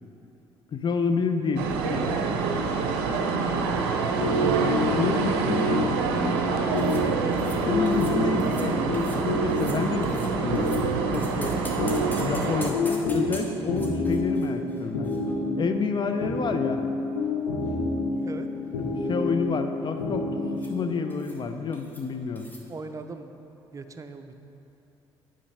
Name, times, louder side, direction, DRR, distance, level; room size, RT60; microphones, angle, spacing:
voice 1, 0.7-2.2 4.4-5.9 7.7-11.6 12.2-15.1 15.6-16.9 19.1-20.3 20.5-22.5, left 4 dB, 35° left, 7 dB, 0.6 m, -29 dB
sound 1, 1.6-12.7, right 4 dB, 75° right, 0.6 m, -26 dB
sound 2, 4.2-20.9, left 2 dB, 75° left, 1.0 m, -29 dB
sound 3, 6.8-7.0 7.3-7.6 7.9-8.1 8.4-8.7 8.9-9.2 9.5-10.8 11.1-15.8 16.1-16.2 16.9-17.8 18.1-18.4 18.7-19.1 20.6-20.8 21.1-21.4 21.7-22.0 22.4-22.6, left 1 dB, 15° left, 1.3 m, -45 dB
voice 2, 22.7-23.4 23.7-24.5, right 3 dB, 25° right, 8 dB, 0.5 m, -41 dB
8.4 x 5.2 x 4.2 m, 2.9 s
hypercardioid pair, 55°, 13 cm